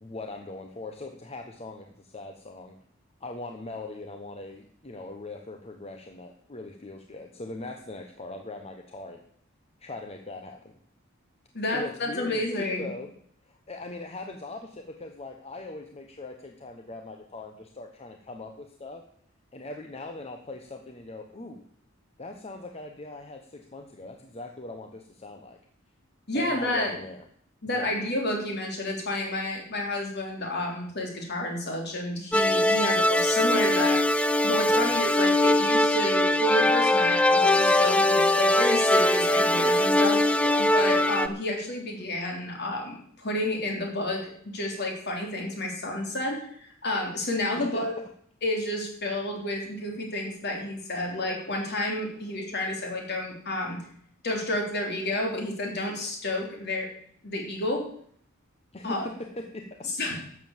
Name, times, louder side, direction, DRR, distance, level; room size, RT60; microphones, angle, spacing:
voice 1, 0.0-2.8 3.2-9.2 9.8-10.8 11.7-13.1 13.4-19.1 19.5-21.6 22.2-25.6 26.3-27.3 27.7-27.9 32.7-32.9 34.6-34.9 40.4-40.7 47.5-47.9 58.7-59.9, left 2 dB, 30° left, 4 dB, 1.0 m, -40 dB
voice 2, 11.5-12.9 26.3-26.9 27.6-34.0 34.4-40.2 40.6-47.9 48.4-53.8 54.2-56.9 57.2-57.9 58.8-59.1 60.0-60.3, left 1 dB, 55° left, 1 dB, 3.5 m, -30 dB
sound 1, 32.3-41.3, left 1 dB, 5° left, 0.5 m, -22 dB
12.5 x 7.4 x 7.3 m, 0.62 s
head